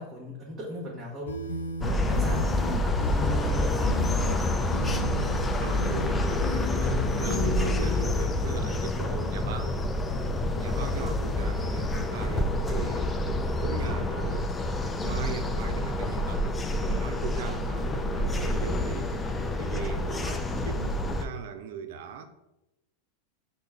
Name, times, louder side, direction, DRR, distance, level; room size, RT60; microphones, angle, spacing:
voice 1, 0.0-1.4 1.8-2.5 3.1-4.5, right 1 dB, 25° right, 1.0 m, -38 dB
sound 1, 1.3-8.1, left 2 dB, 85° left, 0.6 m, -34 dB
sound 2, 1.8-21.3, left 1 dB, 15° left, 0.4 m, -28 dB
voice 2, 5.6-9.9 10.5-13.1 13.6-14.5 15.0-22.3, right 6 dB, 65° right, 0.5 m, -39 dB
5.1 x 2.1 x 3.5 m
hypercardioid pair, 95°, 0 cm